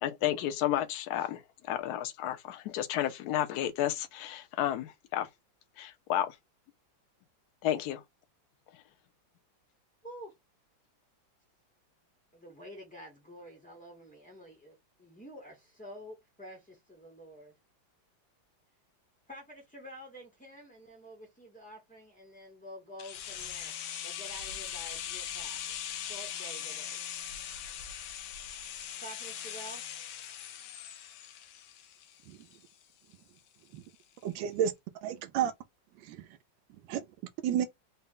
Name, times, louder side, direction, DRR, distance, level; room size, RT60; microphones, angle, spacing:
voice 1, 0.0-1.4 1.7-5.3 5.8-6.4 7.6-8.0, left 12 dB, 70° left, 1.0 m, -32 dB
voice 2, 12.3-17.5 19.3-23.7 24.0-27.0 29.0-29.8, equal, 10° left, 0.4 m, -49 dB
sound 1, 23.0-32.8 33.1-33.2, left 10 dB, 85° left, 1.4 m, -40 dB
voice 3, 34.2-34.7 35.0-35.5 36.0-36.2 36.9-37.0 37.4-37.7, right 9 dB, 80° right, 1.3 m, -30 dB
4.1 x 2.1 x 3.7 m
omnidirectional pair, 2.1 m